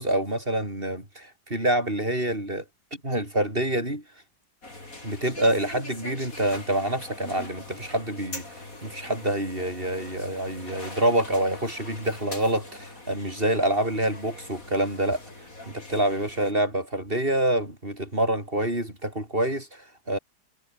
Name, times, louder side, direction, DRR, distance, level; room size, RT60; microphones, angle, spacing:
voice 1, 0.0-2.6 2.9-4.0 5.0-8.4 8.8-15.2 15.7-20.2, right 1 dB, 30° right, 8.4 m, -26 dB
sound 1, 4.6-16.5, left 2 dB, 55° left, 6.5 m, -42 dB
omnidirectional pair, 1.8 m